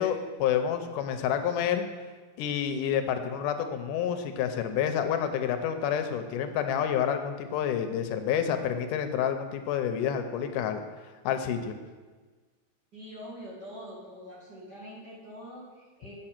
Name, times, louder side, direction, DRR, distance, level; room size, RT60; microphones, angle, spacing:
voice 1, 0.0-1.8 2.4-10.8 11.3-11.8, left 8 dB, 85° left, 7 dB, 2.2 m, -28 dB
voice 2, 12.9-16.1, equal, 35° right, -5 dB, 2.4 m, -44 dB
8.8 x 6.7 x 5.9 m, 1.4 s
omnidirectional pair, 3.7 m